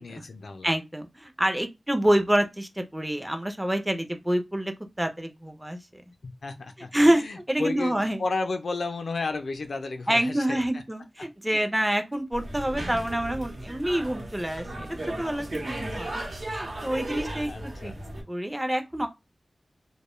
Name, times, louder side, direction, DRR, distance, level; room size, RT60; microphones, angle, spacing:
voice 1, 0.0-0.7 6.2-10.8 11.2-11.3 11.5-11.7 17.4-17.9, left 3 dB, 90° left, 0.3 m, -33 dB
voice 2, 0.6-6.0 6.9-8.2 10.1-14.9 15.2-16.2 16.5-17.9 18.3-19.1, right 1 dB, 10° right, 0.4 m, -27 dB
sound 1, 12.3-18.2, right 1 dB, 75° right, 0.9 m, -35 dB
2.1 x 2.0 x 3.0 m
wide cardioid pair, 100°, 0 cm